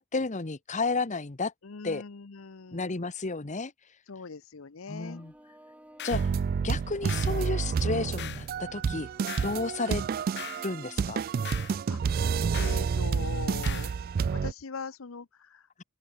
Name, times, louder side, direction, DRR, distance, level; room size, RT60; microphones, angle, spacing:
voice 1, 0.0-1.5 1.8-2.0 2.7-3.7 4.9-5.3 6.0-6.2 6.6-9.1 9.4-10.0 10.6-11.2, left 3 dB, 35° left, 1.0 m, -32 dB
voice 2, 1.6-2.9 4.1-5.2 11.9-13.9 14.3-15.8, left 4 dB, 70° left, 0.8 m, -41 dB
sound 1, 5.0-11.9, equal, 5° right, 4.2 m, -55 dB
sound 2, 6.0-6.3 7.1-7.4 8.2-8.5 9.3-9.6 10.4-10.7 11.5-11.8 12.5-12.9 13.6-14.0, left 10 dB, 55° left, 2.4 m, -40 dB
sound 3, 6.1-14.5, right 6 dB, 45° right, 0.3 m, -29 dB
open air
head